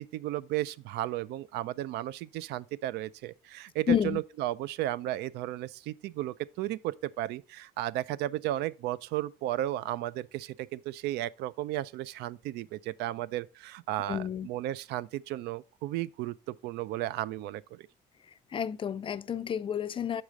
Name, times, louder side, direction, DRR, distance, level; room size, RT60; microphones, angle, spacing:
voice 1, 0.0-17.9, right 14 dB, 80° right, 0.4 m, -34 dB
voice 2, 3.9-4.2 14.1-14.5 18.5-20.2, left 8 dB, 30° left, 0.4 m, -30 dB
7.3 x 4.9 x 3.7 m
cardioid pair, 110°, 17 cm